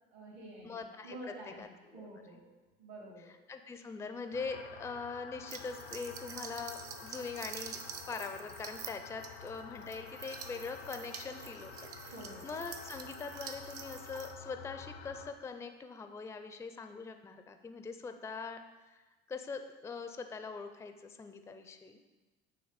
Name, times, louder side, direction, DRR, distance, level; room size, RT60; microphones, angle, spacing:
voice 1, 0.1-2.5 2.8-3.3 12.1-12.5, right 1 dB, 75° right, -4 dB, 2.0 m, -49 dB
voice 2, 0.6-1.2 1.4-2.0 3.3-7.8 8.1-12.1 12.4-18.6 18.8-19.0 19.3-22.0, left 4 dB, 10° left, 8 dB, 0.4 m, -42 dB
sound 1, 4.3-15.3, left 7 dB, 85° left, 0.5 m, -50 dB
sound 2, 5.5-14.3, right 7 dB, 45° right, 0.6 m, -47 dB
8.7 x 3.0 x 4.0 m, 1.2 s
hypercardioid pair, 75°, 32 cm